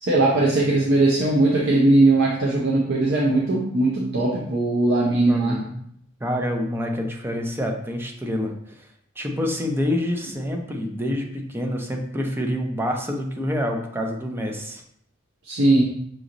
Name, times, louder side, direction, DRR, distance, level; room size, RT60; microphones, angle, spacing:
voice 1, 0.0-5.6 15.5-15.8, right 2 dB, 70° right, -4 dB, 0.7 m, -19 dB
voice 2, 5.3-5.7 6.2-8.8 9.2-14.8, left 1 dB, 10° right, 2 dB, 0.5 m, -27 dB
6.2 x 3.0 x 2.6 m, 0.70 s
head